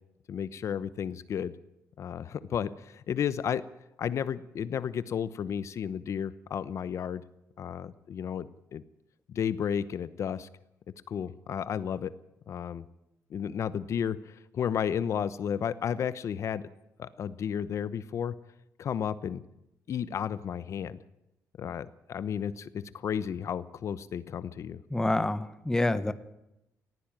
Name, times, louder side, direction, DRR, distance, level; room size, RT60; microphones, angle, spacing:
voice 1, 0.3-1.5 2.0-3.6 4.0-7.2 7.6-8.5 8.7-8.8 9.3-10.5 11.1-12.1 12.5-12.8 13.3-16.6 17.0-18.3 18.8-19.4 19.9-21.0 21.6-24.8, left 8 dB, 55° left, 16 dB, 0.9 m, -32 dB
voice 2, 24.9-26.1, left 2 dB, 10° left, 14 dB, 1.0 m, -27 dB
19.0 x 15.5 x 9.0 m, 0.87 s
cardioid pair, 130°, 6 cm